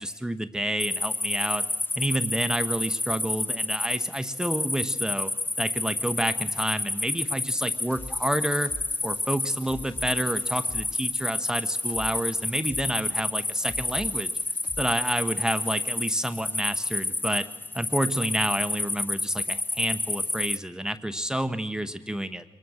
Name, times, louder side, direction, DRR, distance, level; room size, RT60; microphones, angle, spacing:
voice 1, 0.0-1.6 2.0-5.3 5.6-8.7 9.0-14.3 14.8-17.4 17.7-22.4, right 1 dB, 5° right, 9 dB, 1.0 m, -29 dB
sound 1, 0.8-20.6, left 2 dB, 20° left, 0.7 m, -30 dB
sound 2, 7.9-15.8, left 2 dB, 45° left, 3.4 m, -46 dB
22.0 x 20.0 x 6.4 m, 1.2 s
cardioid pair, 70°, 10 cm